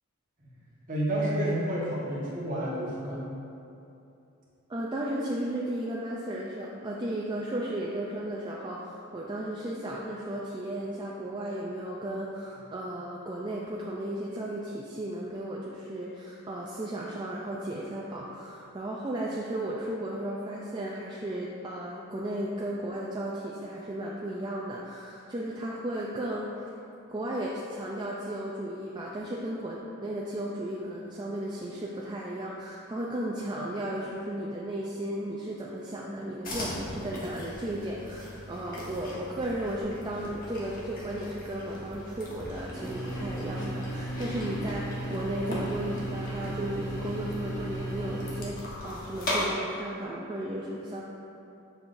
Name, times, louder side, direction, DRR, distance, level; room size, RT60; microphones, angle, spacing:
voice 1, 0.9-3.3, right 1 dB, 40° right, -7 dB, 1.4 m, -30 dB
voice 2, 4.7-26.7 27.1-51.0, right 1 dB, 20° right, -4 dB, 0.4 m, -35 dB
sound 1, 36.4-49.4, left 1 dB, 40° left, 1.2 m, -39 dB
sound 2, 42.7-48.4, right 1 dB, 15° left, 1.0 m, -36 dB
7.1 x 5.5 x 2.6 m, 2.8 s
head